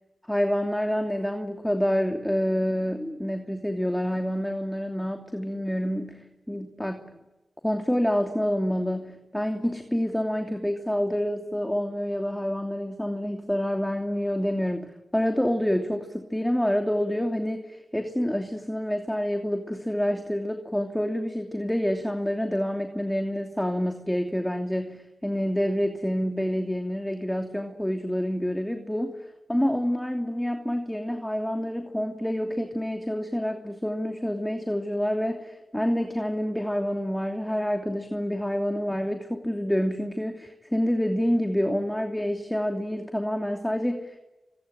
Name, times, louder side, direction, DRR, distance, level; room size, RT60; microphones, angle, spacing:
voice 1, 0.3-7.2 7.6-29.2 29.5-44.2, equal, 10° left, 5 dB, 2.8 m, -27 dB
25.0 x 24.5 x 9.0 m, 1.1 s
cardioid pair, 40°, 0 cm